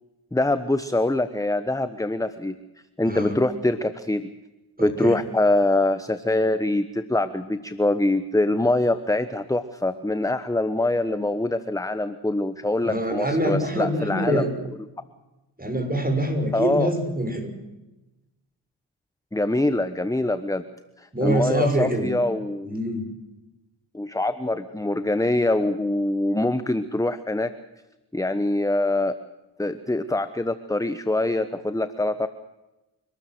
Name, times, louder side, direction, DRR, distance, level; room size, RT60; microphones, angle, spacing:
voice 1, 0.3-2.5 3.0-4.3 4.8-14.4 16.5-16.9 19.3-20.6 21.2-22.8 23.9-27.5 28.1-29.2 29.6-32.3, left 2 dB, 5° left, 12 dB, 1.1 m, -24 dB
voice 2, 4.8-5.2 12.8-14.5 15.6-17.5 21.1-22.1 22.6-23.1, right 1 dB, 20° right, 5 dB, 6.7 m, -25 dB
29.5 x 13.0 x 7.9 m, 1.0 s
cardioid pair, 50°, 45 cm